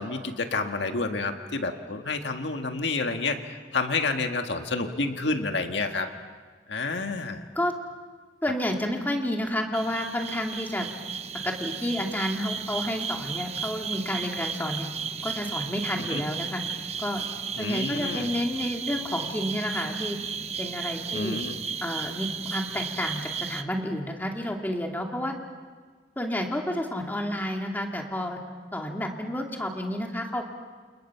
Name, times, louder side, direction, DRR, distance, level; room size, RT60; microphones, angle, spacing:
voice 1, 0.0-3.4 3.7-6.1 6.7-7.4 16.1-16.2 17.6-18.3 21.1-21.5, left 3 dB, 85° left, 5 dB, 1.7 m, -29 dB
voice 2, 8.4-10.9 11.4-14.9 15.2-16.6 17.0-17.2 17.6-20.2 20.6-21.4 21.8-25.3 26.2-28.4 28.7-30.4, left 1 dB, 10° left, 1 dB, 2.3 m, -30 dB
sound 1, 9.7-23.6, right 6 dB, 35° right, 0.9 m, -34 dB
29.5 x 28.0 x 5.8 m, 1.5 s
head